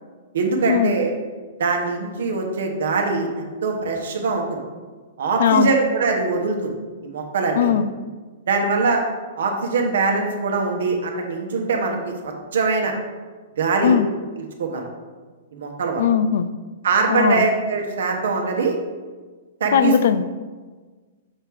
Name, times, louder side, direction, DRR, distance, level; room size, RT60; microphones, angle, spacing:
voice 1, 0.3-1.1 1.6-4.6 5.2-6.7 7.0-7.8 8.5-9.0 9.4-12.9 13.6-14.0 14.6-14.9 15.5-16.1 16.8-18.7 19.6-19.9, right 4 dB, 70° right, 2 dB, 1.1 m, -22 dB
voice 2, 5.4-5.8 7.6-7.9 13.8-14.1 16.0-16.5 17.1-17.5 19.7-20.3, left 8 dB, 65° left, 12 dB, 0.3 m, -19 dB
6.6 x 3.5 x 4.6 m, 1.4 s
hypercardioid pair, 120°, 0 cm